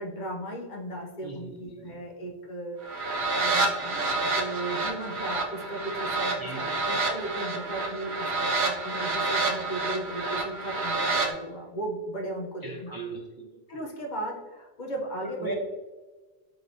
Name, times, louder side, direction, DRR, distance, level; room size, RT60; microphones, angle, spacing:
voice 1, 0.0-13.0 13.7-15.5, right 1 dB, 50° left, 0 dB, 0.8 m, -36 dB
voice 2, 1.2-1.8 6.4-6.6 12.6-13.5 15.4-15.5, right 2 dB, 35° right, -2 dB, 0.3 m, -37 dB
sound 1, 2.8-11.3, right 3 dB, 80° right, 1.0 m, -28 dB
4.9 x 3.3 x 2.6 m, 1.2 s
omnidirectional pair, 1.1 m